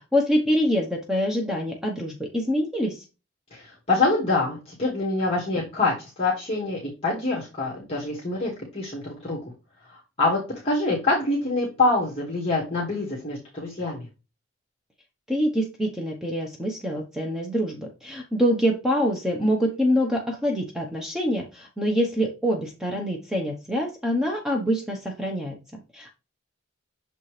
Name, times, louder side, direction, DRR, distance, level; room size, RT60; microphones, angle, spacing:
voice 1, 0.0-3.0 15.3-25.6 25.9-26.1, equal, ahead, 0 dB, 0.9 m, -25 dB
voice 2, 3.5-9.4 9.9-14.1, left 2 dB, 30° left, -5 dB, 1.9 m, -25 dB
6.8 x 4.3 x 3.2 m, 0.29 s
head